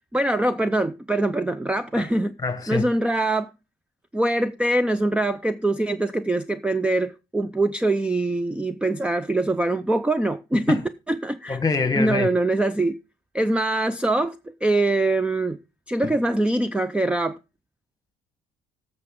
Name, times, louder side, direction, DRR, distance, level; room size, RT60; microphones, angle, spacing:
voice 1, 0.1-2.3 2.7-3.5 4.1-11.6 11.9-13.0 13.3-15.6 15.9-17.4, right 2 dB, 5° right, 0.5 m, -23 dB
voice 2, 2.4-2.9 10.7-10.8 11.5-12.3 16.0-16.1, left 4 dB, 20° left, 1.3 m, -25 dB
16.5 x 6.8 x 3.7 m
cardioid pair, 110°, 17 cm